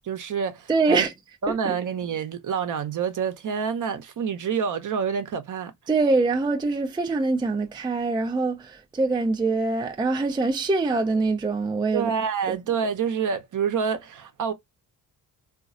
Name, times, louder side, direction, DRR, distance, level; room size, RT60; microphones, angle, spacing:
voice 1, 0.0-1.1 1.4-5.7 11.9-14.5, right 6 dB, 40° right, 0.8 m, -27 dB
voice 2, 0.7-1.1 1.5-1.7 5.9-12.1 12.5-12.6, right 3 dB, 10° right, 0.5 m, -24 dB
3.8 x 2.5 x 2.5 m
hypercardioid pair, 40°, 47 cm